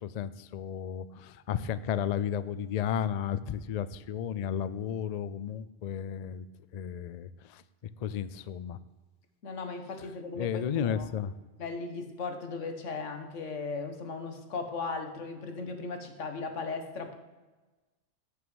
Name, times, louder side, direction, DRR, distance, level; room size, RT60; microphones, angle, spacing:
voice 1, 0.0-6.4 6.7-7.6 8.0-8.8 10.3-11.3, left 8 dB, 65° left, 15 dB, 0.4 m, -33 dB
voice 2, 9.4-11.1 11.6-17.2, left 4 dB, 85° left, 6 dB, 1.6 m, -37 dB
9.4 x 6.6 x 7.0 m, 1.2 s
omnidirectional pair, 1.2 m